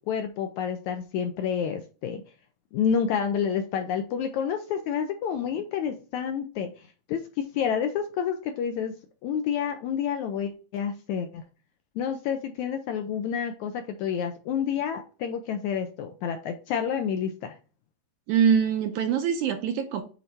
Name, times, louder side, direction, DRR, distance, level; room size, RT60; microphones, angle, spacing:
voice 1, 0.1-2.2 2.7-8.9 9.2-11.4 11.9-17.6, left 7 dB, 75° left, 6 dB, 1.7 m, -29 dB
voice 2, 18.3-20.0, right 7 dB, 75° right, 6 dB, 1.9 m, -23 dB
8.3 x 3.3 x 4.2 m, 0.36 s
omnidirectional pair, 3.9 m